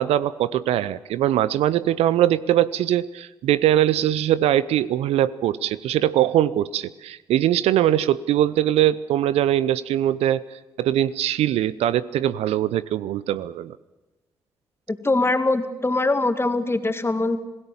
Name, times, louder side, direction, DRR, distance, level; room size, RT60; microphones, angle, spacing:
voice 1, 0.0-13.8, right 12 dB, 70° right, 18 dB, 0.6 m, -22 dB
voice 2, 14.9-17.4, left 2 dB, 20° left, 9 dB, 2.3 m, -22 dB
26.0 x 17.5 x 7.2 m, 1.1 s
hypercardioid pair, 40°, 11 cm